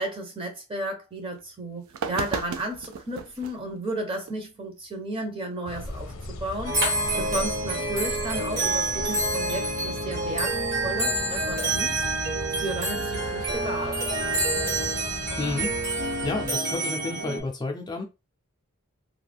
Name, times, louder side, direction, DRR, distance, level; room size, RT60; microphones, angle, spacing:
voice 1, 0.0-6.8 7.2-10.6 10.8-11.9 12.5-14.1, right 1 dB, 25° right, 0.8 m, -33 dB
sound 1, 1.4-1.5 1.9-3.6 4.3-4.4 6.7-7.2, right 5 dB, 75° right, 0.4 m, -35 dB
sound 2, 5.7-16.5, left 2 dB, 65° left, 0.6 m, -38 dB
sound 3, 6.6-17.4, right 2 dB, 50° right, 1.3 m, -27 dB
voice 2, 15.4-15.7 16.2-18.0, left 3 dB, 20° left, 0.4 m, -30 dB
2.3 x 2.2 x 3.3 m
head